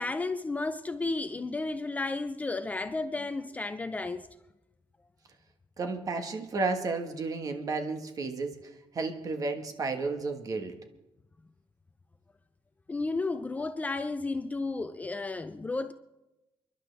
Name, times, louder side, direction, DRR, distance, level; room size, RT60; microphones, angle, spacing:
voice 1, 0.0-4.3 12.9-15.9, left 3 dB, 15° left, 0.4 m, -33 dB
voice 2, 5.8-10.7, right 3 dB, 40° right, 1.5 m, -32 dB
30.0 x 11.0 x 3.4 m
cardioid pair, 160°, 9 cm